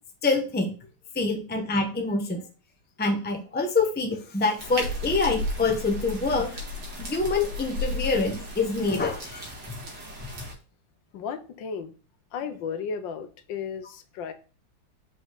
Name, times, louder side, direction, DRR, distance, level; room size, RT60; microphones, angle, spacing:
voice 1, 0.2-0.7 1.1-2.4 3.0-6.5 7.0-9.5, left 3 dB, 10° left, 0.7 m, -26 dB
sound 1, 4.6-10.5, left 1 dB, 60° right, 2.3 m, -34 dB
voice 2, 11.1-11.9 12.3-14.3, left 6 dB, 75° left, 1.4 m, -34 dB
5.5 x 5.4 x 3.9 m
omnidirectional pair, 2.1 m